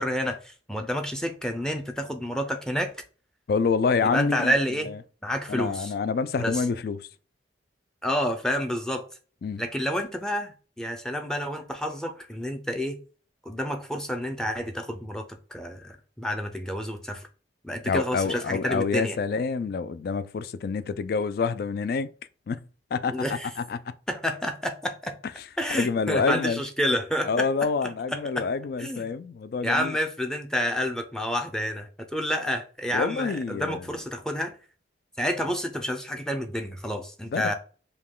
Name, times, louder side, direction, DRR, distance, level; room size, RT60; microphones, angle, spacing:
voice 1, 0.0-2.9 4.0-4.9 5.2-5.9 6.4-6.5 8.0-9.1 9.6-13.0 13.5-15.2 15.5-17.2 17.6-19.2 23.1-23.5 24.1-25.2 25.6-27.5 28.1-28.5 28.8-29.1 29.6-34.5 35.2-37.5, equal, 5° left, 0.5 m, -29 dB
voice 2, 3.5-4.5 4.9-5.0 5.5-7.1 9.4-9.6 17.8-22.1 22.5-22.6 22.9-23.2 23.6-23.9 25.7-26.6 27.3-30.0 32.9-33.9 37.2-37.5, left 5 dB, 55° left, 0.3 m, -27 dB
5.2 x 2.3 x 3.6 m
head